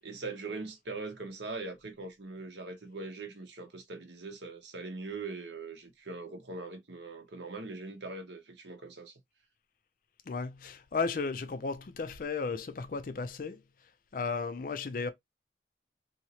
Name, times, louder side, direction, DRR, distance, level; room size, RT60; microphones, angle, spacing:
voice 1, 0.0-9.1, right 3 dB, 75° right, 0.9 m, -41 dB
voice 2, 10.3-13.6 14.1-15.1, left 4 dB, 45° left, 0.4 m, -34 dB
2.9 x 2.8 x 2.7 m
head